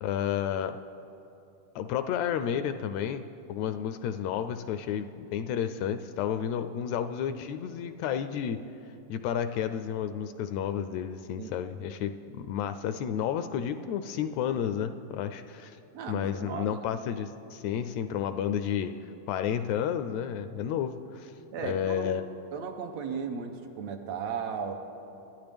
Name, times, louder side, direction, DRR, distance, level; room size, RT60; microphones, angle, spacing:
voice 1, 0.0-0.8 1.8-8.6 9.1-15.8 16.1-21.3 21.6-22.2, left 9 dB, 80° left, 10 dB, 1.7 m, -31 dB
voice 2, 15.9-16.8 21.5-22.2 22.5-24.8, right 6 dB, 70° right, 4 dB, 1.9 m, -36 dB
26.0 x 12.0 x 3.5 m, 2.8 s
omnidirectional pair, 3.3 m